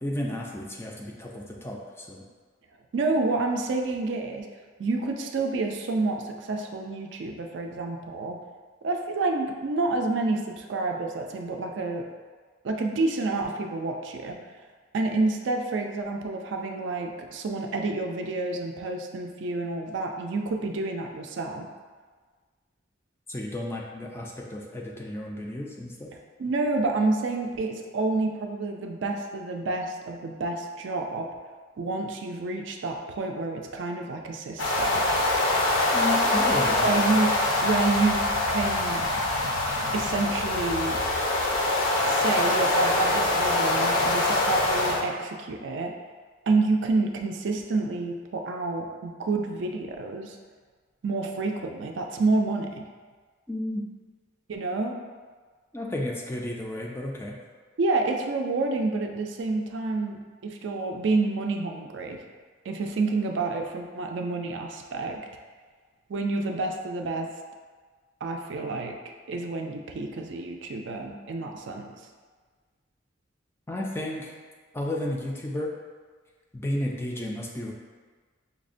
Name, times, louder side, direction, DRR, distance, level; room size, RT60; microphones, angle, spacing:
voice 1, 0.0-2.2 23.3-26.1 35.9-36.9 53.5-53.8 55.7-57.4 73.7-74.3 74.7-75.7 76.5-77.7, left 1 dB, 10° left, -1 dB, 0.3 m, -32 dB
voice 2, 2.9-4.5 4.8-8.4 8.8-12.0 12.6-14.4 14.9-21.7 26.4-31.3 31.8-35.0 36.8-37.3 37.6-39.1 39.9-41.0 42.1-45.9 46.5-50.4 51.0-52.8 54.5-55.0 57.8-62.2 62.7-65.2 66.1-67.3 68.2-68.9 69.3-71.9, right 3 dB, 65° right, 3 dB, 0.4 m, -28 dB
sound 1, 34.6-45.0, left 2 dB, 80° left, 0.5 m, -24 dB
5.7 x 2.1 x 2.5 m, 1.5 s
head